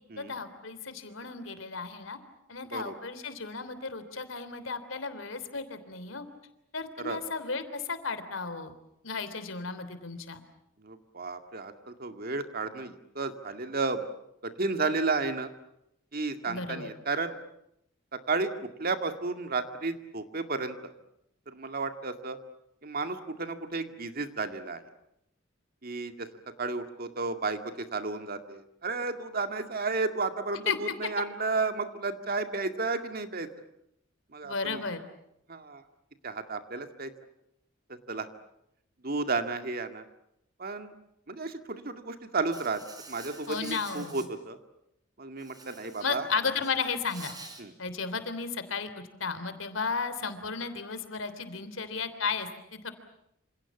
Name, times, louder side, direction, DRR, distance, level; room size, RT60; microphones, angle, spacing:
voice 1, 0.2-2.2 2.5-6.2 6.7-8.7 9.0-10.4 16.5-16.9 30.7-31.1 34.4-35.0 43.5-44.2 46.0-47.3 47.8-52.9, left 4 dB, 85° left, 11 dB, 3.3 m, -34 dB
voice 2, 10.8-14.1 14.4-15.5 16.1-17.4 18.3-20.8 21.5-22.4 22.8-24.8 25.8-26.3 26.6-33.5 34.3-34.8 35.5-35.8 36.2-37.1 37.9-38.3 39.0-40.0 40.6-40.9 41.3-42.8 43.1-44.6 45.2-46.3 47.6-47.7, right 3 dB, 50° right, 7 dB, 2.2 m, -32 dB
Insect, 42.5-44.3 45.4-46.2 46.5-47.6, right 3 dB, 20° right, 4.5 m, -47 dB
27.5 x 27.5 x 7.2 m, 0.79 s
head